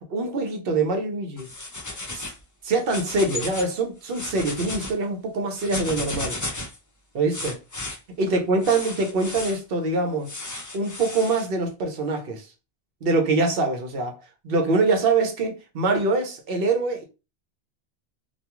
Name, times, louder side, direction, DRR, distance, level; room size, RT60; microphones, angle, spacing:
voice 1, 0.1-1.5 2.1-2.2 2.6-6.4 7.1-7.6 8.2-10.3 10.7-12.5 13.0-17.0, right 3 dB, 60° right, 0.9 m, -24 dB
sound 1, 1.4-2.4 2.8-3.7 4.0-4.9 5.6-6.8 7.3-8.0 8.6-9.6 10.2-11.5, left 2 dB, 30° left, 0.4 m, -34 dB
2.4 x 2.3 x 2.9 m
omnidirectional pair, 1.1 m